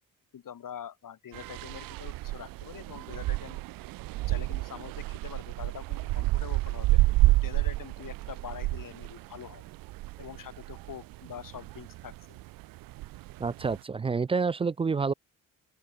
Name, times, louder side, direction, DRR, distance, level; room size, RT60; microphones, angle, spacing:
voice 1, 0.3-3.6 4.3-9.7 10.2-12.4, left 9 dB, 45° left, 7.9 m, -44 dB
sound 1, 1.3-13.8, right 19 dB, 50° right, 0.8 m, -30 dB
voice 2, 13.4-15.1, right 4 dB, 15° right, 0.4 m, -28 dB
open air
figure-of-eight pair, 45°, 43 cm